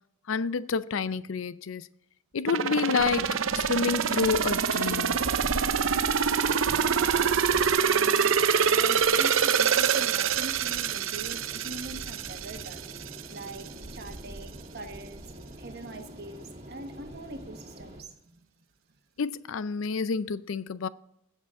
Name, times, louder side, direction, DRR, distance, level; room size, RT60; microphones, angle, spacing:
voice 1, 0.3-1.9 2.3-5.3 19.2-20.9, left 5 dB, 80° left, 0.5 m, -29 dB
sound 1, 2.5-13.2 13.6-13.7, right 7 dB, 80° right, 0.6 m, -25 dB
sound 2, 3.0-18.0, equal, 35° right, 2.2 m, -43 dB
voice 2, 6.7-12.9 13.3-18.4, right 2 dB, 55° right, 1.5 m, -43 dB
21.5 x 7.4 x 3.7 m
head